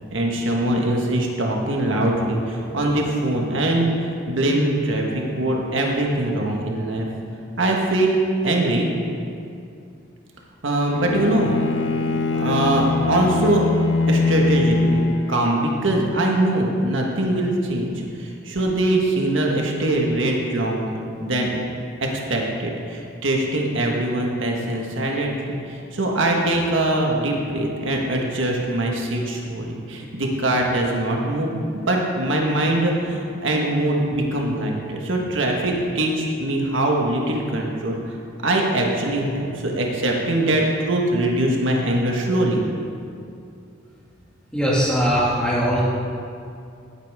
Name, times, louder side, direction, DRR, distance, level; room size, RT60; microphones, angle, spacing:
voice 1, 0.1-7.1 7.6-8.9 10.6-11.6 12.3-13.6 14.1-17.9 18.2-21.5 22.0-38.0 38.4-42.6, right 1 dB, 80° right, 0 dB, 1.5 m, -22 dB
Bowed string instrument, 10.9-15.7, left 3 dB, 65° left, 0.6 m, -22 dB
voice 2, 44.5-45.8, equal, 5° left, -7 dB, 2.4 m, -20 dB
16.0 x 8.6 x 3.6 m, 2.4 s
head